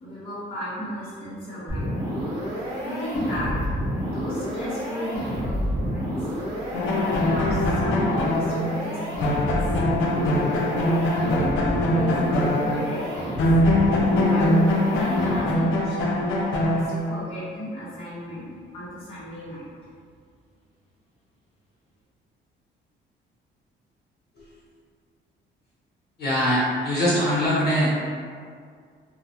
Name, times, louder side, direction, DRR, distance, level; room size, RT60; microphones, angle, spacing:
voice 1, 0.0-2.0 2.8-3.6 4.0-6.3 6.9-9.6 10.7-12.2 12.5-13.4 14.1-14.5 14.8-16.3 16.6-18.5 18.7-19.7, equal, 30° left, -11 dB, 0.9 m, -34 dB
sound 1, 1.7-15.7, equal, 20° right, 0.9 m, -30 dB
sound 2, 6.7-13.1 13.4-17.3, left 1 dB, 80° left, 0.4 m, -23 dB
voice 2, 26.2-28.0, equal, 55° left, -9 dB, 1.0 m, -22 dB
2.3 x 2.0 x 2.7 m, 2.1 s
cardioid pair, 90°, 20 cm